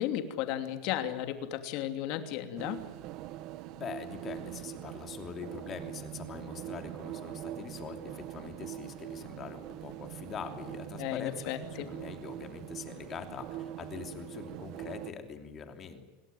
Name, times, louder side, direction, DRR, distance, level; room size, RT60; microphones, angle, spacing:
voice 1, 0.0-2.8 11.0-11.9, left 11 dB, 50° left, 7 dB, 2.8 m, -34 dB
sound 1, 2.6-15.1, right 13 dB, 40° right, 1.1 m, -43 dB
voice 2, 3.7-16.0, left 6 dB, 25° left, 6 dB, 3.0 m, -43 dB
27.0 x 19.0 x 9.4 m, 1.2 s
supercardioid pair, 170°, 0 cm